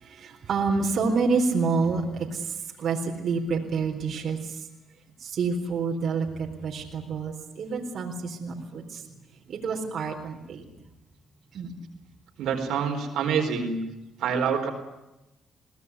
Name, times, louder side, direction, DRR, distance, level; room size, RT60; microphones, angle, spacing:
voice 1, 0.0-4.6 5.2-9.0 9.5-10.6 11.5-11.8, right 4 dB, 60° right, 1 dB, 4.0 m, -28 dB
voice 2, 12.4-13.8 14.2-14.7, right 6 dB, 80° right, 3 dB, 4.3 m, -26 dB
22.5 x 18.0 x 9.7 m, 0.95 s
cardioid pair, 90°, 0 cm